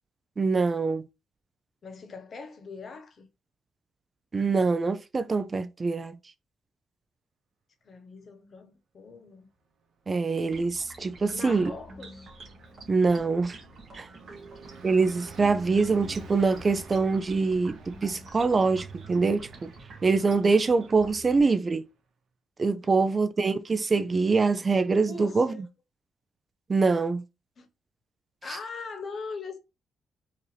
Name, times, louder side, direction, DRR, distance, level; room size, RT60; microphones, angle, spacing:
voice 1, 0.4-1.0 4.3-6.2 10.1-11.7 12.9-13.6 14.0-14.1 14.8-19.7 20.0-21.9 22.6-25.5 26.7-27.2, right 4 dB, 30° right, 0.4 m, -24 dB
voice 2, 1.8-3.3 7.8-9.5 11.3-12.3 14.3-14.4 25.1-25.7 27.6-27.7 28.4-29.6, left 4 dB, 50° left, 1.0 m, -41 dB
sound 1, 10.5-21.4, right 2 dB, 50° right, 1.7 m, -47 dB
Car passing by, 10.6-21.6, right 5 dB, 65° right, 0.8 m, -48 dB
4.9 x 2.7 x 3.2 m
cardioid pair, 90°, 0 cm